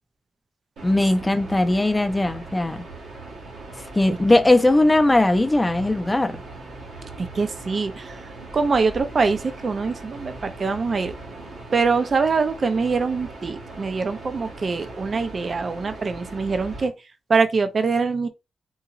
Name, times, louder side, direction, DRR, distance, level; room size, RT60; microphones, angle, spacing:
voice 1, 0.8-2.8 3.9-6.4, left 2 dB, 15° left, 0.5 m, -19 dB
sound 1, 0.8-16.9, right 2 dB, 90° right, 1.3 m, -39 dB
voice 2, 7.2-8.2 8.5-11.1 11.7-16.9 17.3-18.3, right 4 dB, 45° right, 0.4 m, -23 dB
3.9 x 2.9 x 2.5 m
wide cardioid pair, 115°, 0 cm